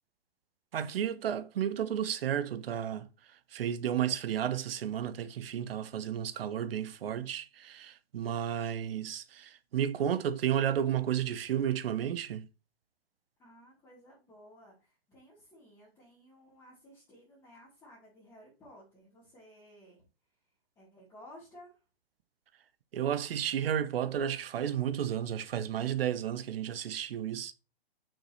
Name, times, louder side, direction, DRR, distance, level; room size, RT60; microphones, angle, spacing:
voice 1, 0.7-3.1 3.5-12.5 22.9-27.5, right 9 dB, 70° right, 0.9 m, -32 dB
voice 2, 13.4-20.0 20.7-21.8, equal, 15° left, 3.4 m, -56 dB
6.4 x 6.2 x 3.2 m
hypercardioid pair, 155°, 31 cm